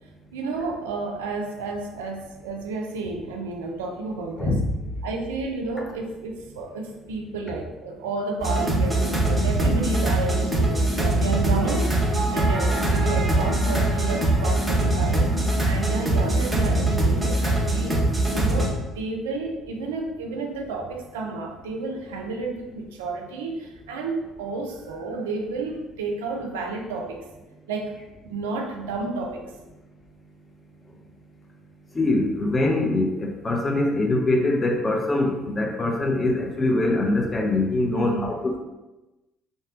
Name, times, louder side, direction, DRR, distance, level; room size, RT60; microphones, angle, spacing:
voice 1, 0.3-4.6 5.0-12.0 12.3-15.3 15.6-27.2 27.7-28.0 28.2-29.4 37.9-38.3, right 3 dB, 80° right, 2 dB, 0.3 m, -31 dB
voice 2, 4.4-4.7 31.9-38.6, left 2 dB, 25° left, 0 dB, 0.7 m, -23 dB
sound 1, 8.4-18.7, right 1 dB, 15° right, 0.9 m, -22 dB
2.7 x 2.2 x 3.6 m, 1.1 s
figure-of-eight pair, 55°, 0 cm